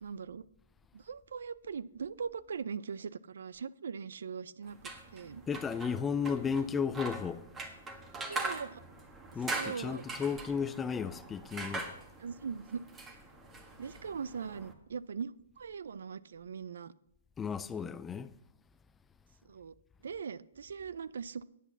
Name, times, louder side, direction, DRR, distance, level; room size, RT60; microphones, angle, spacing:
voice 1, 0.0-0.4 0.9-5.4 8.3-8.8 9.5-10.0 12.2-12.8 13.8-16.9 19.4-19.7 20.0-21.4, right 6 dB, 85° right, 0.5 m, -40 dB
sound 1, 4.7-14.7, right 3 dB, 15° right, 1.4 m, -42 dB
voice 2, 5.5-7.5 9.3-11.9 17.4-18.3, left 6 dB, 10° left, 0.4 m, -34 dB
8.5 x 8.1 x 7.1 m
hypercardioid pair, 150°, 0 cm